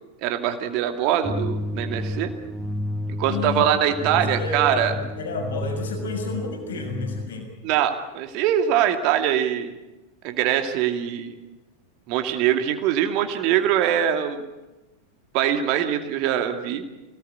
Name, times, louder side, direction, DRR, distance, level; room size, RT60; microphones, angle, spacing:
voice 1, 0.2-2.3 3.2-4.9 7.6-9.7 10.2-11.3 12.1-14.4 15.3-16.8, right 10 dB, 40° right, 6 dB, 2.4 m, -23 dB
sound 1, 1.2-7.3, left 1 dB, 10° right, 1.4 m, -31 dB
voice 2, 3.2-3.7 4.0-7.5, left 4 dB, 65° left, 3 dB, 6.1 m, -31 dB
26.5 x 18.0 x 8.6 m, 1.1 s
figure-of-eight pair, 90°, 0 cm